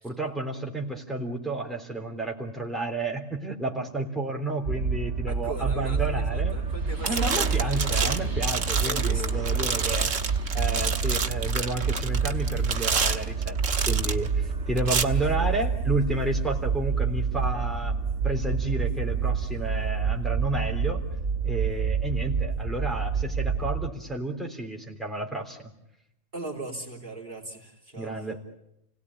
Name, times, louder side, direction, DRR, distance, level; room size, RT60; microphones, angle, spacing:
voice 1, 0.0-6.6 7.0-10.1 10.5-17.9 18.2-21.0 21.4-25.6 28.0-28.4, right 2 dB, ahead, -1 dB, 3.4 m, -31 dB
sound 1, 4.6-23.9, right 5 dB, 70° right, 2.1 m, -28 dB
voice 2, 5.3-10.1 26.3-28.3, right 2 dB, 45° right, -1 dB, 3.5 m, -39 dB
sound 2, 6.5-6.8 7.0-14.3 14.8-15.0, right 5 dB, 85° right, 1.8 m, -29 dB
sound 3, 6.7-13.4, right 1 dB, 15° right, 2.2 m, -45 dB
29.5 x 18.5 x 9.8 m, 0.84 s
omnidirectional pair, 1.3 m